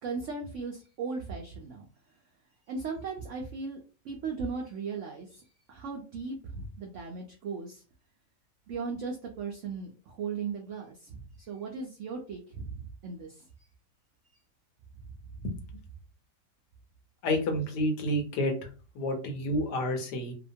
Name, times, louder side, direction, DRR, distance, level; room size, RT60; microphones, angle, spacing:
voice 1, 0.0-1.9 2.7-3.8 4.0-7.8 8.7-13.5 15.4-15.5, right 5 dB, 80° right, 1 dB, 0.6 m, -37 dB
voice 2, 17.2-18.5 18.9-20.3, left 1 dB, 75° left, 4 dB, 1.2 m, -29 dB
2.8 x 2.2 x 2.6 m, 0.36 s
omnidirectional pair, 1.8 m